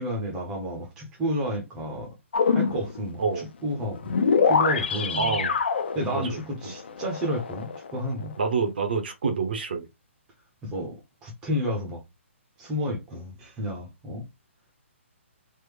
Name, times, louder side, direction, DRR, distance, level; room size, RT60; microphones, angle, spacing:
voice 1, 0.0-2.1 2.5-4.1 4.4-5.4 5.9-8.3 10.6-11.0 11.2-12.0 12.6-14.2, equal, 10° right, 0.6 m, -31 dB
sound 1, 2.3-3.0 3.7-8.4, left 5 dB, 50° left, 0.5 m, -25 dB
voice 2, 5.2-5.6 6.1-6.4 8.4-9.9, right 5 dB, 50° right, 0.7 m, -27 dB
3.3 x 2.0 x 3.2 m
hypercardioid pair, 175°, 7 cm